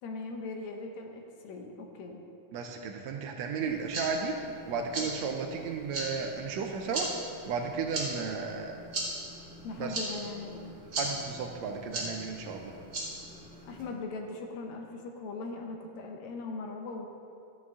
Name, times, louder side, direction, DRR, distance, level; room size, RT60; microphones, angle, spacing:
voice 1, 0.0-2.2 9.6-10.7 13.6-17.1, left 3 dB, 75° left, 2 dB, 2.1 m, -40 dB
voice 2, 2.5-4.4 4.7-7.1 7.5-8.8 9.8-10.0 11.0-12.7, right 5 dB, 75° right, 3 dB, 1.8 m, -34 dB
sound 1, 3.6-13.8, right 1 dB, 40° right, 2.1 m, -39 dB
12.5 x 8.5 x 3.6 m, 2.4 s
omnidirectional pair, 3.4 m